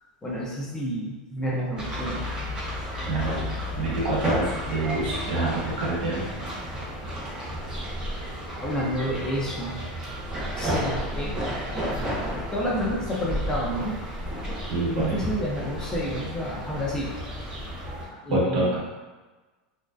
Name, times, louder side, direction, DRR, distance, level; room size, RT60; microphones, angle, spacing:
voice 1, 0.2-2.2 8.5-9.8 10.6-11.3 12.2-14.0 14.9-17.1 18.1-18.8, equal, 15° left, -5 dB, 0.6 m, -30 dB
sound 1, 1.8-18.1, equal, 20° right, 0.8 m, -32 dB
voice 2, 3.1-3.4 3.8-6.2 14.7-15.2 18.3-18.8, right 2 dB, 70° right, -5 dB, 0.9 m, -26 dB
2.5 x 2.2 x 2.2 m, 1.2 s
supercardioid pair, 125°, 4 cm